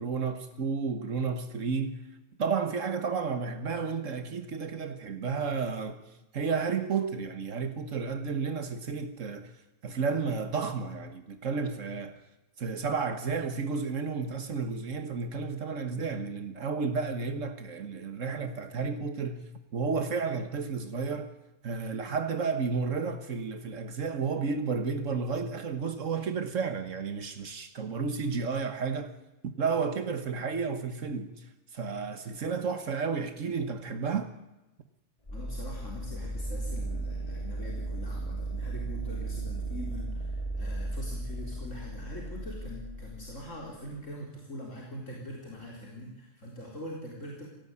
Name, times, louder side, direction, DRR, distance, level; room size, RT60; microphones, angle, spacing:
voice 1, 0.0-2.0 2.4-6.0 6.3-9.5 9.8-12.2 12.6-21.3 21.6-29.1 29.4-34.3, right 5 dB, 85° right, 1.7 m, -32 dB
voice 2, 35.3-47.5, equal, 80° left, 4.5 m, -43 dB
sound 1, 35.3-44.0, right 2 dB, 25° left, 2.4 m, -36 dB
24.0 x 17.5 x 9.8 m
omnidirectional pair, 1.3 m